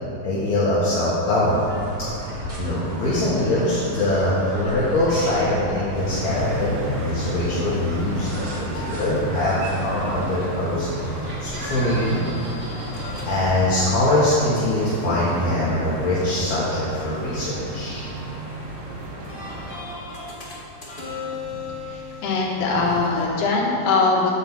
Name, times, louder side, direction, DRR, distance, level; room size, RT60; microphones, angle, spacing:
voice 1, 0.2-1.7 2.0-12.2 13.2-18.1, left 1 dB, 60° left, -9 dB, 2.7 m, -23 dB
sound 1, 1.4-13.7, right 1 dB, 45° right, 1.0 m, -34 dB
sound 2, 5.9-19.8, equal, 80° right, 3.6 m, -33 dB
sound 3, 8.0-23.3, equal, 40° left, 0.7 m, -38 dB
voice 2, 21.5-24.3, left 3 dB, 80° left, -3 dB, 3.1 m, -22 dB
10.0 x 5.2 x 7.4 m, 2.8 s
omnidirectional pair, 3.9 m